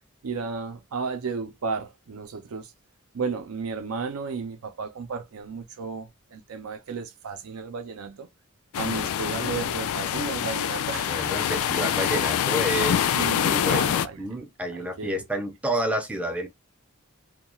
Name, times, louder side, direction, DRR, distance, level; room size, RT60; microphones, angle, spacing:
voice 1, 0.2-2.7 3.1-8.3 8.8-11.2 13.1-14.4 14.7-15.2, right 5 dB, 70° right, 0.5 m, -33 dB
sound 1, 8.7-14.1, left 9 dB, 75° left, 0.3 m, -25 dB
voice 2, 11.1-16.5, equal, 5° right, 0.4 m, -30 dB
2.3 x 2.2 x 2.9 m
head